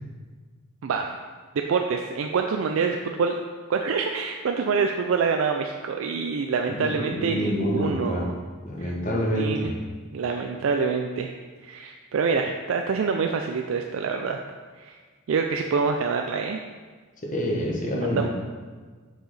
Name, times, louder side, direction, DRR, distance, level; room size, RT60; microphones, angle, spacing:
voice 1, 0.8-1.2 1.7-3.3 3.7-8.3 8.8-8.9 9.3-9.7 10.1-11.3 11.6-14.4 14.8-15.0 15.3-16.6 18.0-18.3, right 5 dB, 65° right, 4 dB, 0.4 m, -26 dB
voice 2, 6.7-8.3 8.6-9.7 17.2-18.3, equal, 35° left, -1 dB, 1.1 m, -27 dB
6.5 x 4.8 x 4.1 m, 1.5 s
head